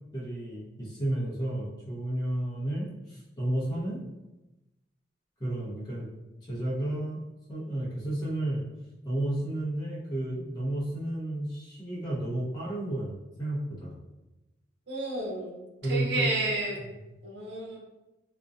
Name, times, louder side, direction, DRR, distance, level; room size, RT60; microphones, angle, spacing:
voice 1, 0.1-4.0 5.4-6.1 6.5-7.2 7.5-8.6 9.0-13.9 15.8-16.3, right 1 dB, 25° left, -6 dB, 0.7 m, -32 dB
voice 2, 14.9-16.8 17.2-17.8, right 2 dB, 65° right, -2 dB, 0.7 m, -31 dB
2.5 x 2.1 x 2.4 m, 1.0 s
head